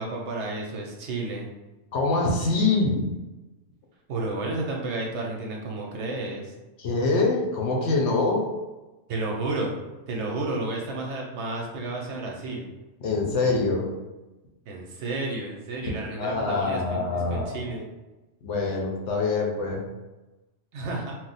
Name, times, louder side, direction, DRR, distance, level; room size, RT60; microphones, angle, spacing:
voice 1, 0.0-1.5 4.1-6.5 9.1-9.7 10.1-12.7 14.7-17.9 20.7-21.2, right 2 dB, 65° right, -1 dB, 0.8 m, -31 dB
voice 2, 1.9-3.1 6.8-8.5 13.0-13.9 16.2-17.6 18.4-19.9, left 3 dB, 65° left, 0 dB, 0.8 m, -24 dB
2.4 x 2.1 x 3.9 m, 1.1 s
omnidirectional pair, 1.4 m